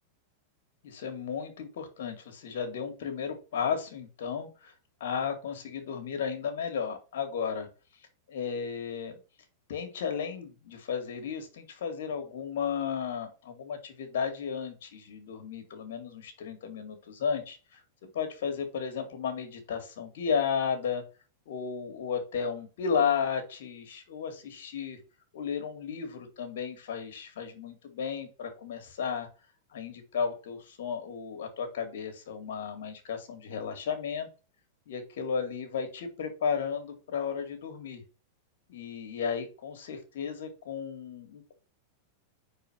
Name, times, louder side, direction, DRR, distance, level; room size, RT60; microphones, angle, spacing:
voice 1, 0.8-4.7 5.0-7.7 8.3-9.2 9.7-17.8 18.1-21.0 21.5-25.0 25.3-29.3 29.7-34.3 34.9-38.0 38.7-41.5, left 6 dB, 75° left, 7 dB, 2.1 m, -34 dB
5.4 x 4.8 x 6.2 m, 0.34 s
supercardioid pair, 135°, 0 cm